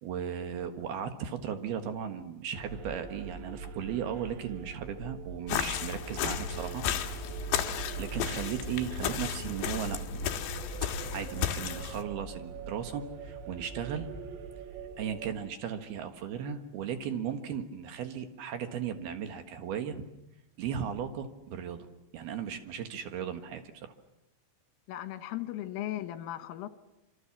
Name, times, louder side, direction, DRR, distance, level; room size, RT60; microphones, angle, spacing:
voice 1, 0.0-6.8 8.0-10.3 10.9-14.1 15.0-20.0 20.6-21.9 22.1-23.9, right 8 dB, 65° right, 7 dB, 3.0 m, -36 dB
sound 1, 2.5-15.3, right 4 dB, 80° right, 4.8 m, -42 dB
sound 2, 5.5-12.0, left 10 dB, 65° left, 3.5 m, -34 dB
voice 2, 24.9-26.7, left 13 dB, 85° left, 10 dB, 4.0 m, -37 dB
28.0 x 26.5 x 7.3 m, 0.92 s
omnidirectional pair, 5.9 m